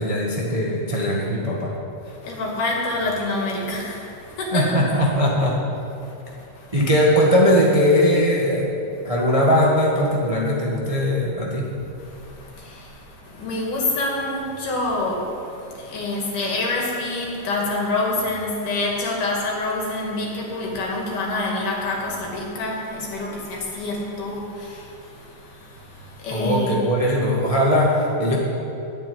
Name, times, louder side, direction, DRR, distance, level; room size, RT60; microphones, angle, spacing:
voice 1, 0.0-1.7 4.5-5.6 6.7-11.7 26.3-28.4, equal, 55° right, -3 dB, 0.3 m, -20 dB
voice 2, 2.2-4.8 6.0-6.7 12.0-26.8, left 2 dB, 65° left, -2 dB, 3.8 m, -27 dB
11.0 x 8.8 x 9.6 m, 2.8 s
omnidirectional pair, 4.0 m